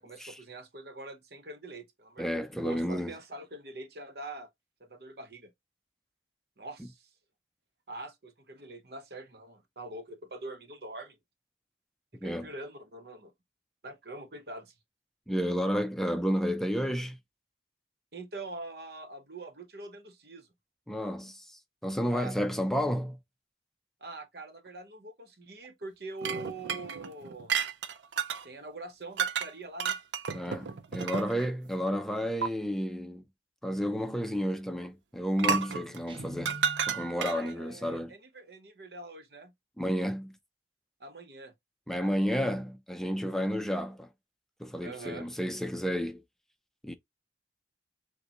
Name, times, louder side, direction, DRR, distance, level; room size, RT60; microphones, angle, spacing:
voice 1, 0.0-2.3 2.6-4.5 4.8-5.5 6.6-7.1 7.9-11.2 12.1-13.3 13.8-14.7 18.1-20.5 22.1-22.3 24.0-27.7 28.4-30.0 37.2-39.5 41.0-41.5 41.9-42.2 44.8-45.3, right 2 dB, 60° right, 0.9 m, -44 dB
voice 2, 2.2-3.1 6.8-6.9 12.2-12.5 15.3-17.2 20.9-23.2 30.3-33.2 33.6-36.6 36.9-38.1 39.8-40.4 41.9-44.1 44.6-46.2 46.8-46.9, equal, ahead, 0.5 m, -31 dB
sound 1, 26.2-28.4 29.2-29.5 29.8-31.5 32.4-32.5 35.4-37.5, right 6 dB, 85° right, 0.5 m, -32 dB
Guitar, 36.1-37.2, equal, 30° right, 0.8 m, -45 dB
6.6 x 2.2 x 2.9 m
head